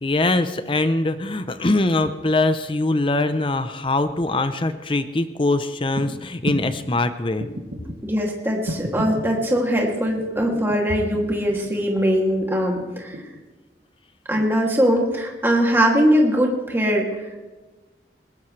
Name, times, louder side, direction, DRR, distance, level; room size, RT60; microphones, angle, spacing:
voice 1, 0.0-7.5, left 2 dB, 30° left, 10 dB, 0.6 m, -22 dB
sound 1, 5.9-6.1 6.4-6.8 7.4-8.0 8.6-9.3 10.2-10.8 11.1-11.8 12.8-13.4 14.4-14.5, right 1 dB, 90° right, 2.5 m, -31 dB
voice 2, 8.0-13.2 14.3-17.5, equal, 15° right, -1 dB, 2.6 m, -21 dB
20.5 x 19.0 x 3.3 m, 1.2 s
head